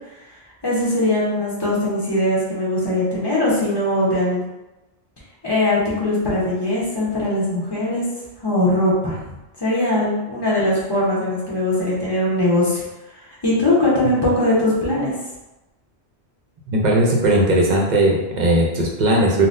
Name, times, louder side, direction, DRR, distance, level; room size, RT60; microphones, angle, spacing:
voice 1, 0.6-4.4 5.4-8.0 8.4-9.2 9.6-12.8 13.4-15.1, left 1 dB, 25° left, -7 dB, 0.9 m, -20 dB
voice 2, 16.7-19.5, right 1 dB, 50° right, -1 dB, 0.6 m, -18 dB
3.8 x 2.2 x 2.6 m, 1.0 s
omnidirectional pair, 1.1 m